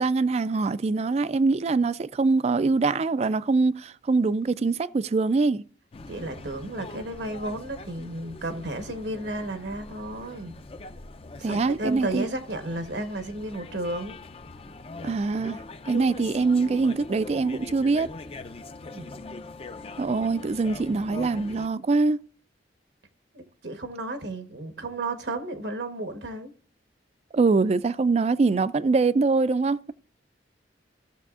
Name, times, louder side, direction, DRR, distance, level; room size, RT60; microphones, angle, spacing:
voice 1, 0.0-5.6 11.4-12.3 15.0-15.6 15.9-18.1 20.0-22.2 27.3-29.9, right 3 dB, 35° right, 0.3 m, -23 dB
sound 1, 5.9-21.7, left 3 dB, 30° left, 0.5 m, -42 dB
voice 2, 6.1-10.5 11.4-14.2 18.9-19.2 23.3-26.5, right 1 dB, 75° right, 1.2 m, -33 dB
16.0 x 6.8 x 2.4 m
head